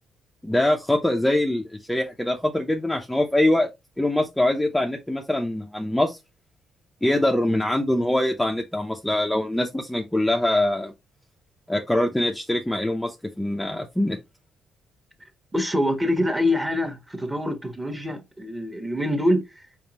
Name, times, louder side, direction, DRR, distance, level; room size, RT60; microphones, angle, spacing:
voice 1, 0.4-3.7 4.0-6.2 7.0-10.9 11.7-14.2, left 1 dB, 5° left, 0.7 m, -23 dB
voice 2, 15.5-19.6, left 1 dB, 10° right, 1.2 m, -25 dB
5.1 x 3.5 x 2.9 m
cardioid pair, 90°, 0 cm